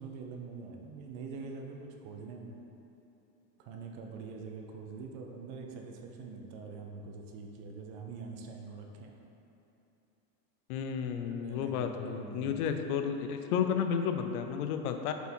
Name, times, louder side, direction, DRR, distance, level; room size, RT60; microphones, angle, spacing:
voice 1, 0.0-2.6 3.6-9.2 11.3-12.8, right 4 dB, 40° right, 2 dB, 0.6 m, -44 dB
voice 2, 10.7-15.1, left 7 dB, 70° left, 6 dB, 0.6 m, -32 dB
6.8 x 4.5 x 4.4 m, 3.0 s
supercardioid pair, 170°, 47 cm